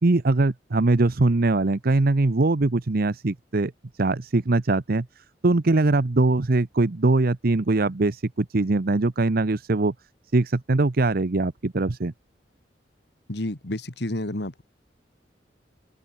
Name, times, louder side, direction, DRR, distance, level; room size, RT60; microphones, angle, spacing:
voice 1, 0.0-3.7 4.0-5.1 5.4-9.9 10.3-12.1, right 2 dB, 55° right, 0.8 m, -22 dB
voice 2, 13.3-14.6, left 1 dB, 70° left, 2.2 m, -30 dB
open air
head